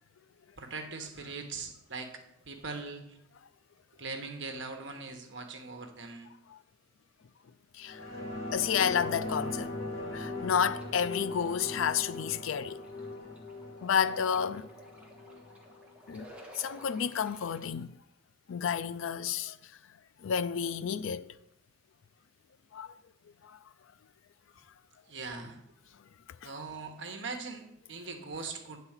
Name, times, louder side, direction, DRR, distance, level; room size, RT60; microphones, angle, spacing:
voice 1, 0.6-3.2 4.0-6.3 25.1-25.6 26.4-28.8, right 4 dB, 65° right, 1.1 m, -41 dB
sound 1, 7.8-16.8 17.2-17.3, left 2 dB, 30° left, 2.1 m, -40 dB
voice 2, 8.5-9.7 10.1-12.8 13.8-14.7 16.1-16.3 16.6-17.9 18.5-19.6 20.2-21.3 22.7-22.9 26.4-26.5, left 7 dB, 85° left, 0.4 m, -30 dB
sound 2, 10.8-17.7, equal, 5° right, 1.4 m, -53 dB
9.6 x 4.2 x 7.2 m
head